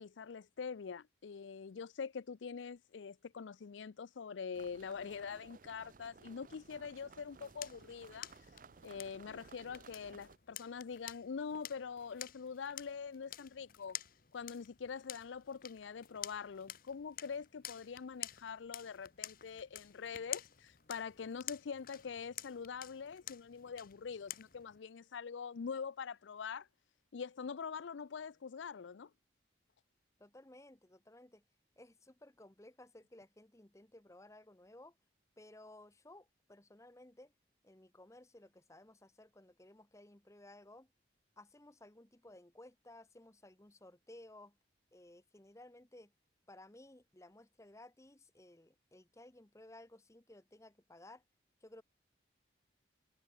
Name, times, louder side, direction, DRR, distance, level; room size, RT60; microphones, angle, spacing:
voice 1, 0.0-8.3 8.8-14.0 14.3-26.7 27.1-29.1, left 6 dB, 80° left, 0.5 m, -44 dB
sound 1, 4.5-10.4, right 4 dB, 45° right, 0.5 m, -59 dB
sound 2, 7.1-24.8, left 13 dB, 50° left, 1.2 m, -50 dB
voice 2, 30.2-31.4 31.8-35.0 35.4-37.3 37.6-40.9 41.4-44.6 44.9-46.1 46.5-51.2 51.6-51.8, left 1 dB, 15° left, 0.9 m, -57 dB
head